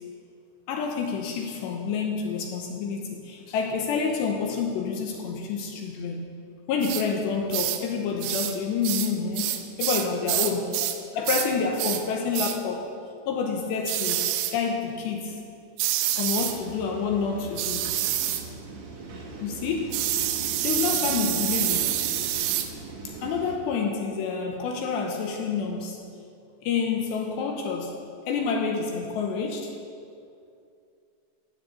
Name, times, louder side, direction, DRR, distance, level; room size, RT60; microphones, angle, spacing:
voice 1, 0.7-6.3 6.7-10.7 11.1-12.9 13.3-15.4 16.1-17.9 19.4-20.0 20.6-21.8 23.0-26.0 26.6-29.7, left 5 dB, 75° left, 2 dB, 2.8 m, -28 dB
sound 1, 6.8-7.1 7.5-7.8 8.2-8.6 8.8-11.0 11.3-11.5 11.8-12.1 12.3-12.6 13.9-14.6 15.8-16.6 17.6-18.5 19.9-22.7, right 12 dB, 85° right, 3.4 m, -27 dB
sound 2, 16.4-23.6, right 3 dB, 60° right, 3.8 m, -40 dB
14.5 x 9.5 x 8.1 m, 2.4 s
omnidirectional pair, 5.8 m